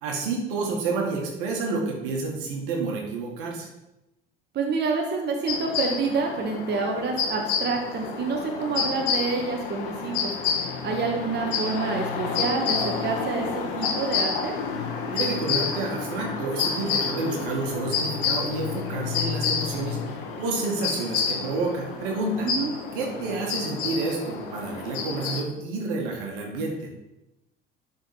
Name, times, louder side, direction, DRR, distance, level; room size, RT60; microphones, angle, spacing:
voice 1, 0.0-3.7 15.1-22.5 22.9-26.9, right 3 dB, 65° right, 0 dB, 1.8 m, -29 dB
voice 2, 4.5-10.3 10.8-14.5 22.4-22.7, right 4 dB, 35° right, 1 dB, 1.4 m, -28 dB
sound 1, 5.5-25.4, left 6 dB, 65° left, 1.2 m, -29 dB
11.5 x 4.4 x 4.3 m, 0.95 s
figure-of-eight pair, 60°, 29 cm